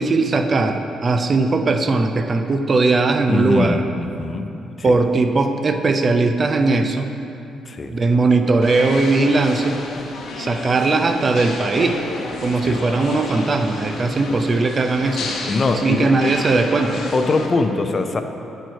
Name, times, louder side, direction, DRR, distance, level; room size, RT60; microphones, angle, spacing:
voice 1, 0.0-3.8 4.8-7.1 7.9-9.8 10.4-12.0 12.4-15.3 15.8-17.0, right 3 dB, 40° right, 6 dB, 0.5 m, -19 dB
voice 2, 3.3-4.5 4.8-5.0 7.6-7.9 12.6-12.8 14.2-14.4 15.5-16.1 17.1-18.2, left 3 dB, 35° left, 7 dB, 0.5 m, -22 dB
sound 1, 8.6-17.5, left 3 dB, 65° left, 0.9 m, -31 dB
9.0 x 4.5 x 4.6 m, 2.8 s
cardioid pair, 90°, 0 cm